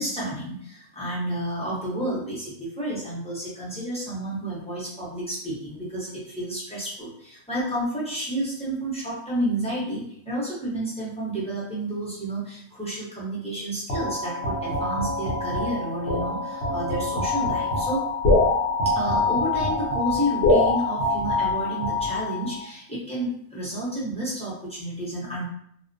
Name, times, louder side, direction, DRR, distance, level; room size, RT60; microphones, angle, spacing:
voice 1, 0.0-18.0 18.8-25.5, right 1 dB, 5° left, -8 dB, 0.5 m, -31 dB
sound 1, 13.9-22.6, left 2 dB, 55° left, 0.9 m, -24 dB
2.4 x 2.1 x 2.5 m, 0.66 s
omnidirectional pair, 1.4 m